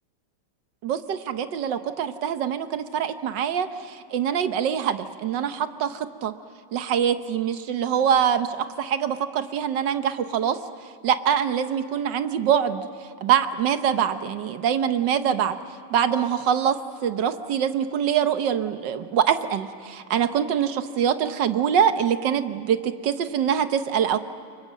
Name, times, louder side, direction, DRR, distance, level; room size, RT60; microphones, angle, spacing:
voice 1, 0.8-6.3 6.7-10.6 11.0-12.8 13.2-15.6 15.9-16.8 17.0-24.2, right 8 dB, 60° right, 10 dB, 1.4 m, -24 dB
29.5 x 24.0 x 7.6 m, 2.5 s
omnidirectional pair, 2.4 m